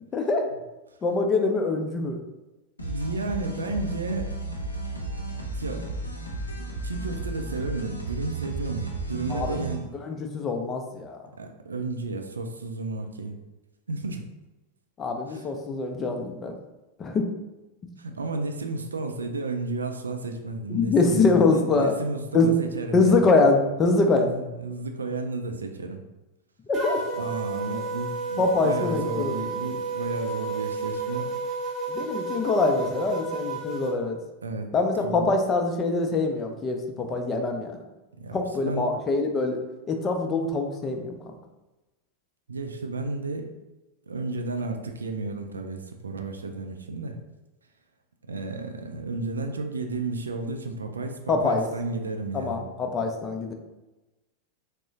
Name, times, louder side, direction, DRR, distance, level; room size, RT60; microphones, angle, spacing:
voice 1, 1.0-2.2 9.3-9.6 10.0-11.2 15.0-16.5 17.0-17.2 20.7-21.9 22.3-22.6 22.9-24.3 26.7-27.0 28.4-29.3 31.9-34.2 34.7-36.8 37.1-37.8 38.3-39.6 39.9-41.3 51.3-51.6 52.3-53.5, left 3 dB, 25° left, 4 dB, 0.4 m, -24 dB
sound 1, 2.8-9.8, right 2 dB, 85° left, 0.5 m, -33 dB
voice 2, 2.8-4.3 5.5-5.9 6.6-10.0 11.4-13.4 13.9-14.2 15.3-15.5 18.0-23.3 24.2-26.0 27.2-31.3 34.4-34.7 35.0-35.3 38.2-38.9 42.5-43.5 44.1-47.2 48.3-52.6, right 3 dB, 75° right, 4 dB, 0.3 m, -32 dB
sound 2, 26.7-33.9, right 3 dB, 20° right, 0.8 m, -32 dB
3.6 x 2.0 x 2.6 m, 1.1 s
figure-of-eight pair, 90°, 0 cm